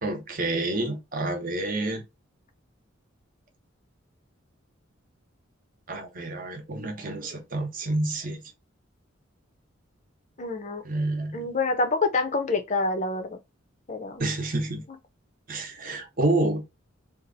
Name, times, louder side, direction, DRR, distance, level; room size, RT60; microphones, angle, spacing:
voice 1, 0.0-2.0 5.9-8.4 10.8-11.4 14.2-14.8 15.5-16.7, right 2 dB, 40° right, 0.8 m, -28 dB
voice 2, 10.4-10.8 11.3-13.4 13.9-14.2, left 3 dB, 35° left, 0.6 m, -27 dB
2.7 x 2.5 x 3.9 m
head